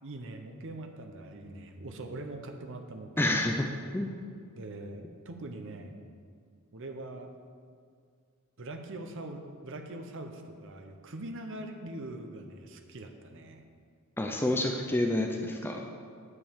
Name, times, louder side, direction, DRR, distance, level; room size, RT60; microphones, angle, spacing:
voice 1, 0.0-3.4 4.6-6.0 6.7-7.3 8.6-13.6, right 2 dB, 60° right, 5 dB, 0.8 m, -42 dB
voice 2, 3.2-3.7 3.9-4.1 14.2-15.9, left 1 dB, 10° left, 2 dB, 0.5 m, -28 dB
9.8 x 5.3 x 7.3 m, 2.1 s
head